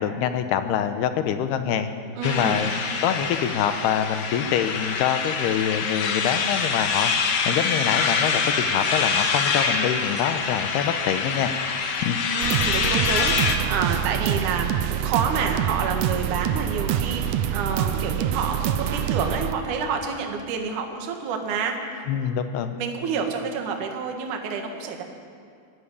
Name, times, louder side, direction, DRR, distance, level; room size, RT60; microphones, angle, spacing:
voice 1, 0.0-1.9 2.2-2.7 3.0-7.1 7.5-11.5 12.0-12.2 22.1-22.8, left 9 dB, 80° left, 9 dB, 2.9 m, -25 dB
sound 1, 2.2-13.5, left 5 dB, 60° left, 2.7 m, -25 dB
voice 2, 2.2-2.6 12.3-22.0 22.8-25.0, right 5 dB, 55° right, 3 dB, 2.9 m, -28 dB
sound 2, 12.4-19.5, right 10 dB, 90° right, 1.7 m, -26 dB
20.0 x 14.0 x 9.9 m, 2.2 s
omnidirectional pair, 4.7 m